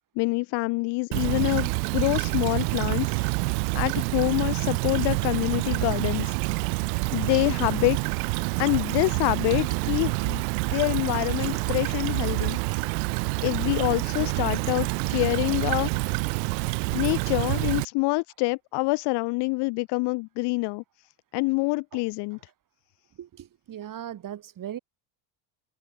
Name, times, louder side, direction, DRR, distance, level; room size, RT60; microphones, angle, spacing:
voice 1, 0.2-3.3 3.7-6.3 7.1-8.0 8.6-10.4 10.7-12.6 13.4-16.1 16.9-20.8 21.3-22.4, left 27 dB, 60° left, 0.5 m, -26 dB
Stream / Trickle dribble, 1.1-17.9, right 36 dB, 80° right, 1.2 m, -27 dB
voice 2, 23.2-24.8, right 10 dB, 40° right, 3.7 m, -39 dB
supercardioid pair, 110°, 48 cm